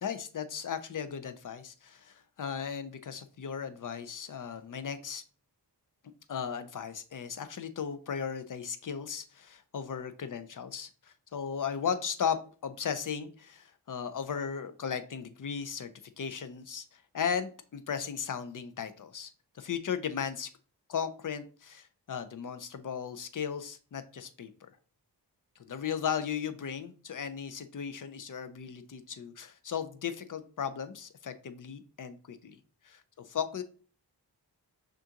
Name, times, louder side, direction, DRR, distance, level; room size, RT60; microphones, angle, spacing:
voice 1, 0.0-5.2 6.3-15.9 16.2-20.5 20.9-24.7 25.7-32.6 32.8-33.0 33.3-33.6, left 7 dB, 50° left, 11 dB, 0.6 m, -36 dB
6.0 x 2.6 x 2.9 m, 0.40 s
wide cardioid pair, 70°, 41 cm